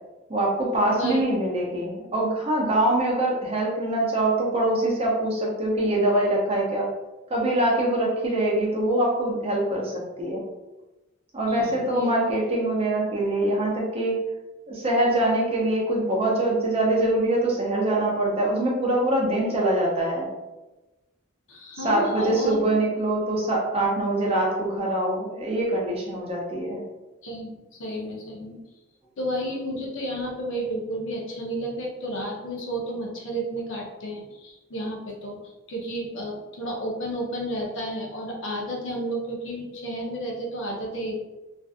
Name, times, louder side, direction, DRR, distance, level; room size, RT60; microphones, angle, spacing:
voice 1, 0.3-6.9 7.3-10.4 11.3-14.2 14.7-20.3 21.8-26.8, right 1 dB, 30° right, -2 dB, 0.6 m, -24 dB
voice 2, 0.9-1.2 11.5-12.1 21.5-22.6 27.2-27.5 27.8-28.6 29.2-41.1, right 1 dB, 65° left, -1 dB, 0.6 m, -32 dB
2.5 x 2.4 x 2.4 m, 1.1 s
head